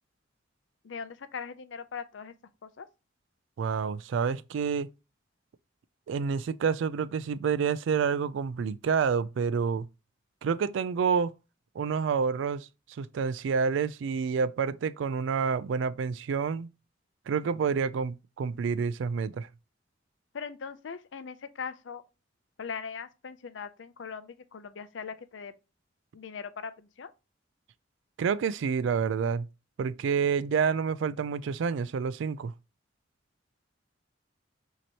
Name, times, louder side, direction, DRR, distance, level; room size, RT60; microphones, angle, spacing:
voice 1, 0.8-2.3 2.6-2.9 20.3-22.0 22.6-25.5 26.1-27.1, left 6 dB, 75° left, 0.5 m, -40 dB
voice 2, 3.6-4.9 6.1-9.9 10.4-11.3 11.8-16.7 17.3-19.5 28.2-29.5 29.8-32.5, right 6 dB, 80° right, 0.3 m, -28 dB
6.1 x 2.9 x 2.8 m
head